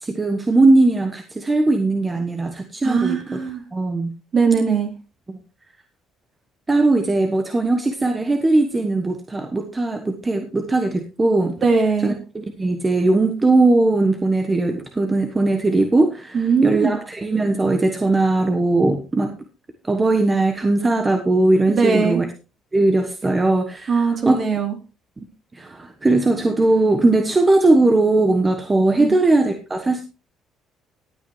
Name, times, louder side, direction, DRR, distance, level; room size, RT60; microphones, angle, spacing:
voice 1, 0.0-3.4 3.7-4.1 6.7-11.5 12.0-19.3 19.8-22.3 22.7-24.4 25.2-25.3 25.5-30.0, right 2 dB, 20° right, 6 dB, 1.3 m, -19 dB
voice 2, 2.8-3.6 4.3-4.9 11.6-12.2 16.3-17.0 21.7-22.2 23.9-24.8 29.0-29.1, right 5 dB, 45° right, 3 dB, 3.8 m, -20 dB
17.5 x 8.8 x 3.2 m, 0.30 s
supercardioid pair, 85°, 0 cm